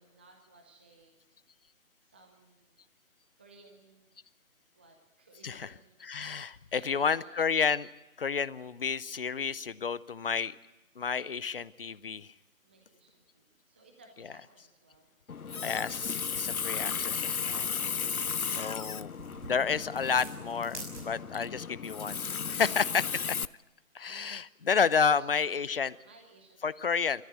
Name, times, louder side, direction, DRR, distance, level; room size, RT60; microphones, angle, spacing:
voice 1, 0.0-1.4 2.0-2.8 3.4-4.1 4.7-6.0 6.5-7.5 12.6-15.1 16.9-17.4 21.3-21.5 22.5-22.8 23.0-23.3 23.8-23.9 24.8-26.8, right 2 dB, 10° right, 3 dB, 0.7 m, -59 dB
voice 2, 6.0-7.9 8.2-10.5 11.0-12.3 15.6-17.7 18.5-19.1 19.4-22.2 22.5-23.0 23.9-26.0 26.6-27.2, left 6 dB, 40° left, 19 dB, 0.7 m, -30 dB
Water tap faucet, 15.3-23.5, left 6 dB, 85° left, 0.7 m, -35 dB
sound 1, 15.3-21.4, right 3 dB, 35° right, 5.9 m, -50 dB
27.0 x 14.0 x 9.0 m, 1.0 s
figure-of-eight pair, 150°, 42 cm